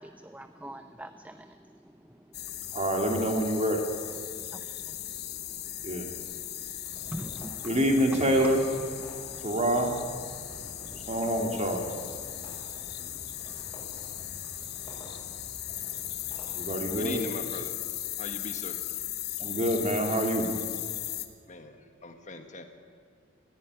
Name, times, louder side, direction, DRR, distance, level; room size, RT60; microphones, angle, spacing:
voice 1, 0.0-2.2 4.5-5.0 7.0-7.6 9.1-9.2 10.5-10.9, right 1 dB, 10° right, 9 dB, 0.6 m, -44 dB
sound 1, 2.3-21.3, left 12 dB, 55° left, 1.3 m, -37 dB
voice 2, 2.7-3.8 5.8-6.1 7.6-8.7 9.4-9.9 10.9-11.8 16.5-17.2 19.4-20.5, right 1 dB, 35° right, 3 dB, 2.8 m, -26 dB
sound 2, 6.8-17.1, left 1 dB, 15° left, 7.0 m, -49 dB
voice 3, 16.9-17.8 18.2-18.8 21.5-22.6, left 2 dB, 35° left, 6 dB, 1.6 m, -40 dB
19.0 x 15.0 x 9.6 m, 2.2 s
head